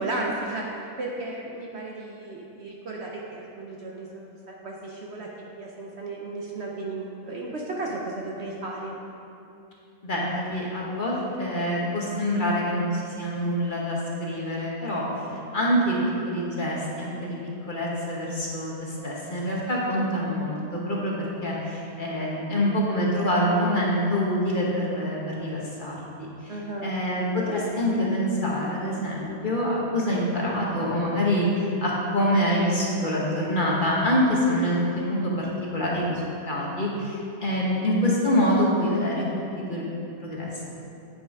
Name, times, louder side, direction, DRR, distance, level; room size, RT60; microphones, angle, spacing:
voice 1, 0.0-9.0 26.5-26.9, right 2 dB, 55° right, -2 dB, 0.9 m, -34 dB
voice 2, 10.0-15.0 15.5-16.0 16.2-17.4 17.7-21.1 21.4-26.0 26.4-26.6 26.8-35.5 35.7-39.3 39.7-39.8 40.2-40.6, equal, 35° left, -4 dB, 1.3 m, -25 dB
8.8 x 5.9 x 4.7 m, 2.7 s
omnidirectional pair, 1.6 m